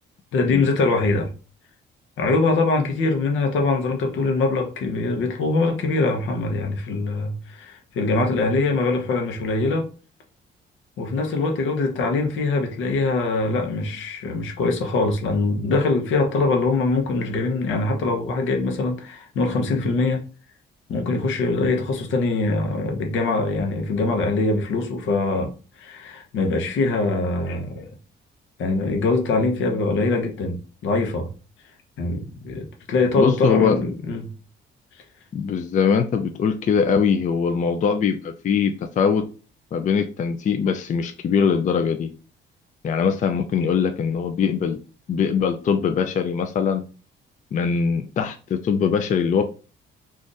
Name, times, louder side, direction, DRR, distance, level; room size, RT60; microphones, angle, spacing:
voice 1, 0.3-1.3 2.2-9.9 11.0-20.2 20.9-27.9 28.6-31.3 32.0-34.3, left 3 dB, 75° left, 0.8 m, -23 dB
voice 2, 33.2-33.8 35.3-39.2 39.7-42.1 42.8-44.8 45.1-46.8 47.5-49.4, left 6 dB, 40° left, 0.4 m, -22 dB
2.5 x 2.5 x 3.9 m
cardioid pair, 90°, 20 cm